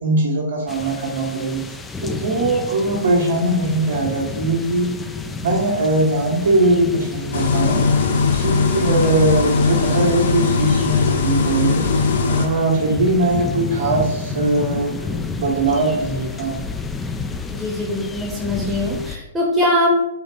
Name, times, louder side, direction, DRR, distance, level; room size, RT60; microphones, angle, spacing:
voice 1, 0.0-1.6 2.0-4.9 5.4-7.8 8.3-11.9 12.3-14.9 15.4-16.6, right 2 dB, 75° right, -6 dB, 1.3 m, -20 dB
sound 1, 0.7-19.2, left 4 dB, 10° left, 0.3 m, -31 dB
sound 2, 7.3-12.5, left 4 dB, 65° left, 0.5 m, -19 dB
voice 2, 17.5-19.9, left 1 dB, 10° right, -2 dB, 0.9 m, -22 dB
3.9 x 2.4 x 3.8 m, 0.89 s
figure-of-eight pair, 120°, 0 cm